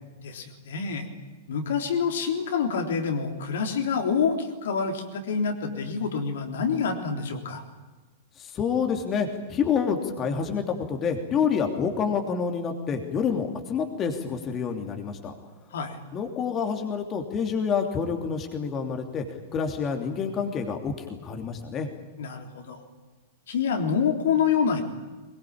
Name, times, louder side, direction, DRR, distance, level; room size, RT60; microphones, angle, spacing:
voice 1, 0.2-1.1 1.5-7.6 15.7-16.0 22.2-22.8 23.5-24.8, left 6 dB, 60° left, 4 dB, 3.6 m, -27 dB
voice 2, 8.4-15.3 16.1-19.2 19.5-21.9, left 6 dB, 25° left, 4 dB, 3.1 m, -28 dB
23.0 x 22.0 x 8.8 m, 1.3 s
figure-of-eight pair, 100°, 0 cm